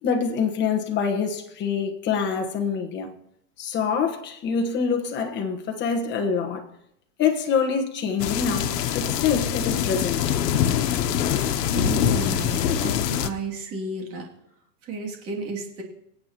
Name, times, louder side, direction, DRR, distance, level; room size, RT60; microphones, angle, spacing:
voice 1, 0.0-3.1 3.6-6.7 7.2-10.2, left 6 dB, 25° left, 1.3 m, -25 dB
sound 1, 8.2-13.3, left 9 dB, 90° left, 1.1 m, -24 dB
voice 2, 11.8-14.3 14.8-15.8, right 3 dB, 30° right, 2.7 m, -32 dB
25.0 x 8.6 x 3.0 m
supercardioid pair, 150°, 47 cm